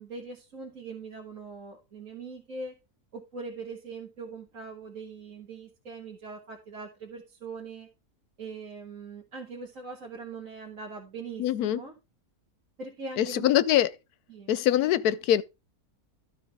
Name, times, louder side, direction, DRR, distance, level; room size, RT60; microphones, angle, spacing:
voice 1, 0.0-2.7 3.1-7.9 8.4-11.9 12.8-13.5 14.3-14.5, right 4 dB, 60° right, 2.2 m, -41 dB
voice 2, 11.4-11.8 13.2-13.9 14.5-15.4, left 12 dB, 85° left, 1.2 m, -23 dB
12.0 x 6.4 x 3.6 m
omnidirectional pair, 1.6 m